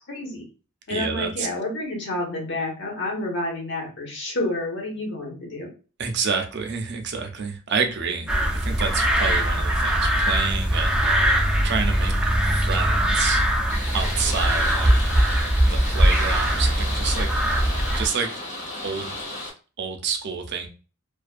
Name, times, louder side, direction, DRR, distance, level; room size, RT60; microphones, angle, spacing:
voice 1, 0.1-0.4 0.9-5.7, left 2 dB, 60° left, 0 dB, 1.1 m, -29 dB
voice 2, 0.9-1.5 6.0-11.1 11.6-13.5 13.9-15.1 15.6-17.3 17.9-18.4 18.8-19.2 19.8-20.7, right 5 dB, 55° right, 4 dB, 0.5 m, -28 dB
sound 1, 8.3-18.1, right 1 dB, 5° right, 0.4 m, -21 dB
sound 2, 13.7-19.5, left 1 dB, 35° left, 1.3 m, -34 dB
2.5 x 2.2 x 2.4 m, 0.35 s
head